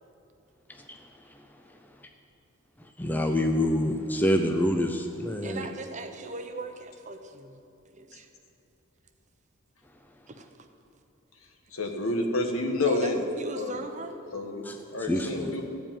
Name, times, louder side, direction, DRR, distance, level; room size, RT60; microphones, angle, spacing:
voice 1, 0.7-1.0 1.3-1.4 2.0-2.1 3.0-5.7 14.6-14.8 15.1-15.5, left 1 dB, 10° left, 4 dB, 0.5 m, -27 dB
voice 2, 5.4-7.6 7.9-8.3 10.3-10.7 12.9-14.2, right 3 dB, 35° right, 6 dB, 0.8 m, -39 dB
voice 3, 11.7-13.1 13.5-13.7 14.3-14.6 14.9-15.6, left 2 dB, 75° left, 3 dB, 1.3 m, -28 dB
15.0 x 5.1 x 8.9 m, 2.8 s
head